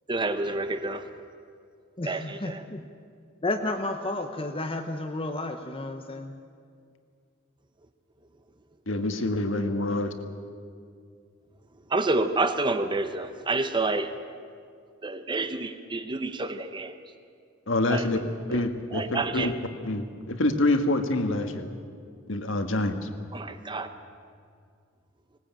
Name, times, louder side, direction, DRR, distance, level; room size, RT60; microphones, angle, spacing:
voice 1, 0.1-1.1 2.0-2.6 11.9-14.1 15.0-17.0 17.9-18.1 18.5-19.5 23.3-23.9, right 2 dB, 25° right, 9 dB, 0.8 m, -29 dB
voice 2, 2.0-2.8 3.4-6.4, left 2 dB, 30° left, 5 dB, 1.0 m, -32 dB
voice 3, 8.9-10.1 17.7-18.2 18.5-19.5 19.8-21.7 22.3-23.1, left 2 dB, 75° left, 7 dB, 1.7 m, -26 dB
19.5 x 18.5 x 9.0 m, 2.3 s
head